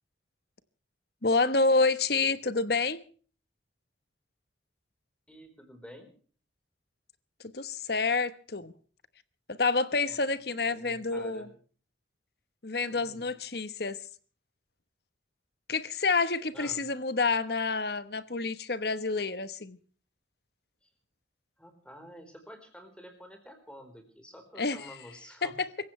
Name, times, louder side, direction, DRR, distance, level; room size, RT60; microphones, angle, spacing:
voice 1, 1.2-3.0 7.5-8.7 9.5-11.5 12.6-14.0 15.7-19.8 24.6-24.9 25.4-25.7, left 3 dB, 55° left, 1.2 m, -28 dB
voice 2, 5.3-6.1 10.1-10.2 10.5-11.5 12.9-13.3 16.5-16.9 20.8-20.9 21.6-25.6, equal, 5° left, 4.3 m, -49 dB
26.5 x 16.0 x 3.3 m
head